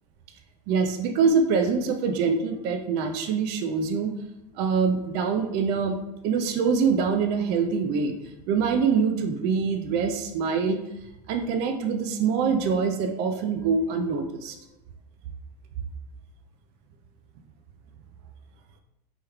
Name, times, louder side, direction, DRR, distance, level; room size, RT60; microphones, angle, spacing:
voice 1, 0.7-4.1 4.6-8.1 8.5-10.8 11.3-14.6, right 5 dB, 55° right, 6 dB, 0.4 m, -24 dB
3.4 x 3.0 x 2.3 m, 0.94 s
supercardioid pair, 115°, 21 cm